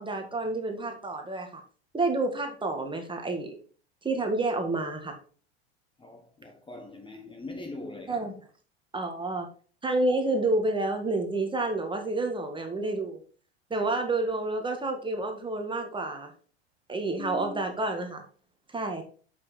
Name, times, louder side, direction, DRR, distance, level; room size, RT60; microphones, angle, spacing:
voice 1, 0.0-1.6 1.9-3.5 4.0-5.2 8.1-8.3 8.9-9.5 9.8-13.2 13.7-16.3 16.9-18.2 18.7-19.0, right 2 dB, 15° right, 1.8 m, -29 dB
voice 2, 6.0-8.3 17.1-17.7, left 2 dB, 15° left, 1.6 m, -42 dB
7.5 x 5.9 x 4.2 m
hypercardioid pair, 95°, 33 cm